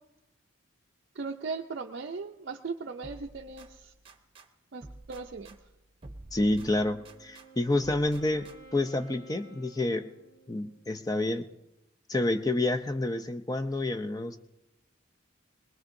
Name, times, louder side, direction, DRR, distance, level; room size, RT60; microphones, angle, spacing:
voice 1, 1.1-3.9 4.7-5.6, right 4 dB, 50° right, 1 dB, 0.5 m, -38 dB
sound 1, 3.0-4.5 4.8-7.5 7.8-8.9, right 2 dB, 25° right, 0.8 m, -50 dB
voice 2, 6.3-10.1 10.5-11.5 12.1-14.4, left 2 dB, 20° left, 7 dB, 0.5 m, -29 dB
Wind instrument woodwind instrument, 6.4-10.8, right 2 dB, 65° left, 7.6 m, -54 dB
22.0 x 20.5 x 2.6 m, 0.96 s
head